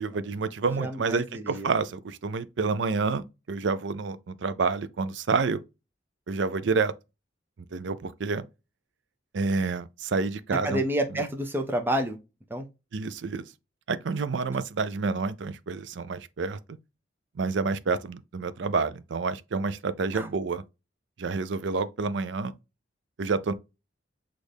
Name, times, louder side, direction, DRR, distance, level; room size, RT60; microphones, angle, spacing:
voice 1, 0.0-5.6 6.3-6.9 7.7-8.4 9.3-10.8 11.1-11.2 12.9-13.4 13.9-16.6 17.4-20.6 21.2-22.5 23.2-23.5, right 4 dB, 70° right, 0.5 m, -28 dB
voice 2, 0.8-1.7 10.5-12.2 12.5-12.7 20.1-20.3, right 1 dB, 10° right, 0.6 m, -29 dB
6.2 x 2.5 x 3.4 m
head